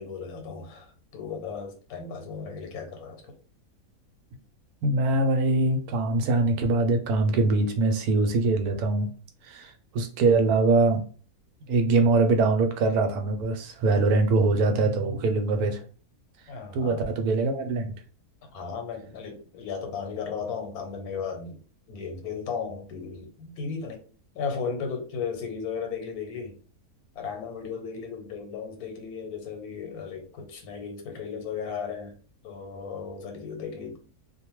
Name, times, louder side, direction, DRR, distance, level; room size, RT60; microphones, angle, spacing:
voice 1, 0.0-3.2 16.5-17.1 18.4-21.6 21.9-24.0 24.3-26.6 27.1-32.1 32.4-34.0, left 6 dB, 80° left, 1.2 m, -35 dB
voice 2, 4.8-9.1 9.5-11.0 11.7-15.8 16.7-17.9, right 3 dB, 80° right, 1.1 m, -23 dB
2.5 x 2.2 x 2.9 m
omnidirectional pair, 1.6 m